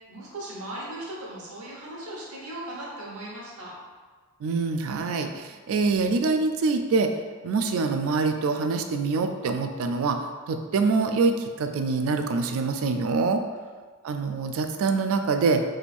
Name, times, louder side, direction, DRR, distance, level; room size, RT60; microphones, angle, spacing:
voice 1, 0.1-3.7, right 1 dB, 90° right, -5 dB, 1.0 m, -38 dB
voice 2, 4.4-7.2 7.4-13.4 14.0-15.6, right 4 dB, 70° right, 6 dB, 0.3 m, -25 dB
3.4 x 3.4 x 2.4 m, 1.5 s
head